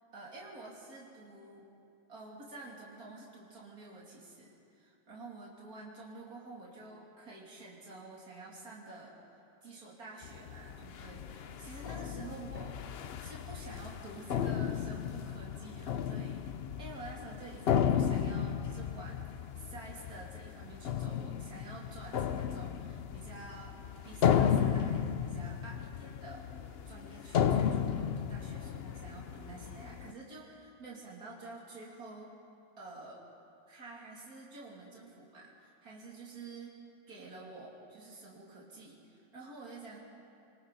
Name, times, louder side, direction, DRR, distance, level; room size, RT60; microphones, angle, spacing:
voice 1, 0.1-1.7 2.1-12.7 13.2-23.8 24.0-32.3 32.8-33.2 33.7-36.7 37.1-40.0, right 3 dB, 60° right, -4 dB, 3.5 m, -49 dB
sound 1, 10.2-30.1, left 8 dB, 60° left, 0.6 m, -34 dB
28.0 x 24.0 x 4.1 m, 2.6 s
omnidirectional pair, 1.7 m